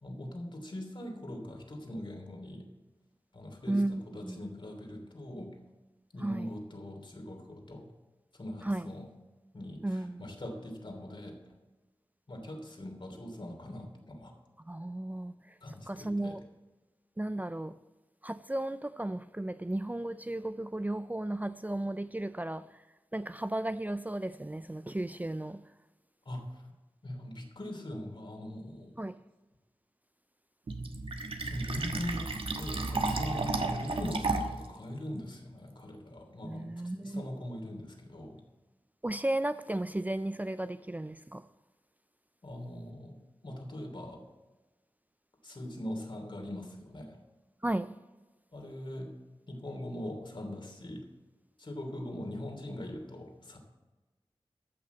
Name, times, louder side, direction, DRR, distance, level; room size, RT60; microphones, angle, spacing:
voice 1, 0.0-2.7 3.3-5.6 6.1-7.9 8.3-9.1 9.5-11.4 12.3-14.3 15.6-16.4 26.2-26.7 27.0-29.0 31.4-38.4 42.4-44.2 45.4-47.2 48.5-49.1 49.5-51.1 51.6-53.6, left 1 dB, 60° left, 2.9 m, -42 dB
voice 2, 3.7-4.4 6.2-6.5 8.6-8.9 9.8-10.2 14.7-15.5 15.9-16.4 17.2-17.8 18.2-22.8 23.1-25.6 29.0-29.2 36.4-37.2 39.0-41.5 47.6-48.0, right 1 dB, 15° right, 0.4 m, -34 dB
Fill (with liquid), 30.7-34.7, right 3 dB, 70° right, 1.2 m, -33 dB
14.0 x 6.2 x 8.1 m
wide cardioid pair, 60°, 10 cm